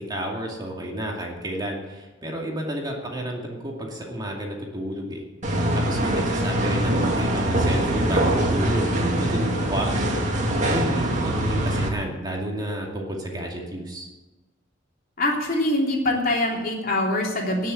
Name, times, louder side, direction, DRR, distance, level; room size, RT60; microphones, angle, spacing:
voice 1, 0.0-5.2 5.5-14.1, right 1 dB, 20° right, -1 dB, 2.4 m, -31 dB
sound 1, 5.4-11.9, right 1 dB, 40° right, 2.2 m, -23 dB
voice 2, 15.2-17.7, left 1 dB, 50° left, -1 dB, 3.3 m, -24 dB
18.5 x 6.7 x 8.1 m, 1.2 s
head